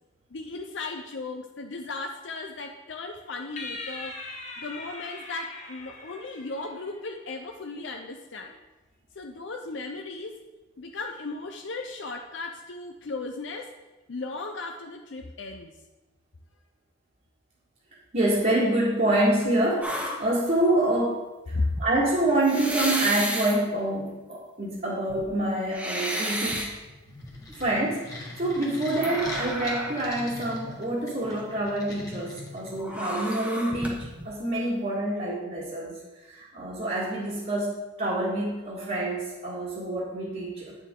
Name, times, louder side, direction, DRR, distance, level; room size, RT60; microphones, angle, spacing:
voice 1, 0.3-4.2 4.6-8.5 9.2-10.4 10.8-13.7 14.1-15.8 21.5-21.7, left 3 dB, 70° left, 3 dB, 0.6 m, -36 dB
sound 1, 3.6-7.1, left 3 dB, 35° left, 1.1 m, -40 dB
voice 2, 18.1-26.7 27.6-36.0 36.2-40.8, right 1 dB, 45° right, -8 dB, 1.8 m, -27 dB
sound 2, 19.8-20.7 21.5-21.8 22.4-23.6 24.3-24.4 24.9-26.7 27.2-27.6 28.9-30.1 30.3-30.4 32.8-34.2, equal, 5° right, 1.1 m, -32 dB
sound 3, 26.8-33.1, left 2 dB, 20° left, 1.5 m, -42 dB
9.3 x 6.9 x 3.8 m, 1.1 s
head